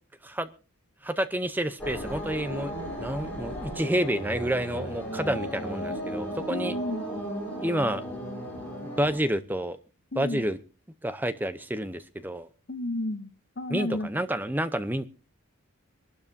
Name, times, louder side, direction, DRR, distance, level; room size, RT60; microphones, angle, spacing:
voice 1, 1.0-2.7 3.0-6.7 7.6-8.0 9.0-9.8 10.2-10.6 11.0-12.5 13.7-15.1, right 1 dB, 10° right, 0.6 m, -29 dB
sound 1, 1.8-9.2, equal, 10° left, 6.2 m, -35 dB
voice 2, 6.5-7.1 10.1-10.5 12.7-14.1, left 1 dB, 50° left, 0.9 m, -32 dB
25.0 x 12.0 x 2.6 m
head